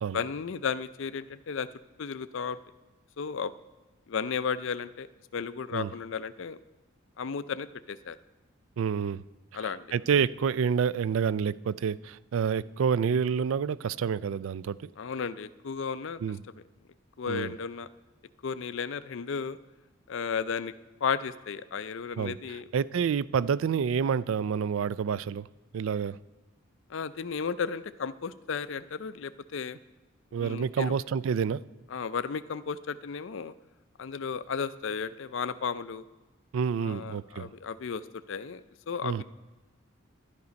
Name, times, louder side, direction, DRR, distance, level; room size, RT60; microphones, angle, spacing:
voice 1, 0.1-1.7 2.0-2.6 3.2-3.5 4.1-5.1 5.3-6.6 7.2-8.2 9.5-9.9 15.0-16.2 17.2-17.9 18.4-19.6 20.1-20.7 21.0-22.6 26.9-29.8 30.4-30.9 31.9-33.5 34.0-36.0 36.8-38.0 38.3-39.2, left 6 dB, 60° left, 0.4 m, -34 dB
voice 2, 8.8-9.2 9.6-14.9 16.2-16.4 17.3-17.5 22.2-25.5 25.7-26.2 30.3-31.6 36.5-37.5 39.0-39.2, right 6 dB, 70° right, 0.3 m, -28 dB
11.5 x 9.7 x 5.2 m
head